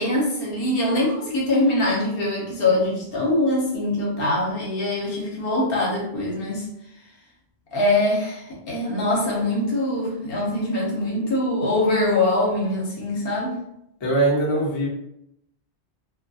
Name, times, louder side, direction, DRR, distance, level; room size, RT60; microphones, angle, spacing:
voice 1, 0.0-6.7 7.7-13.6, left 1 dB, 60° left, -2 dB, 0.9 m, -23 dB
voice 2, 14.0-14.9, right 2 dB, 35° left, -3 dB, 0.5 m, -21 dB
2.3 x 2.2 x 2.7 m, 0.78 s
omnidirectional pair, 1.1 m